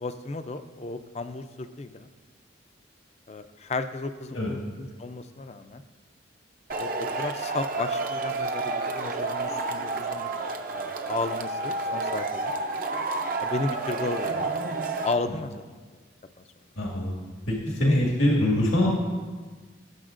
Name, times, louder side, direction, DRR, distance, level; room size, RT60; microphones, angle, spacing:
voice 1, 0.0-2.1 3.3-5.8 6.8-10.3 10.7-12.5 13.4-14.5 14.9-15.6, left 3 dB, 35° left, 10 dB, 0.4 m, -34 dB
Male speech man speaking / Shout / Clapping, 6.7-15.1, right 3 dB, 45° right, 0.6 m, -30 dB
voice 2, 16.8-17.2 17.5-18.9, left 1 dB, 90° left, -3 dB, 1.9 m, -23 dB
17.0 x 7.1 x 2.5 m, 1.4 s
head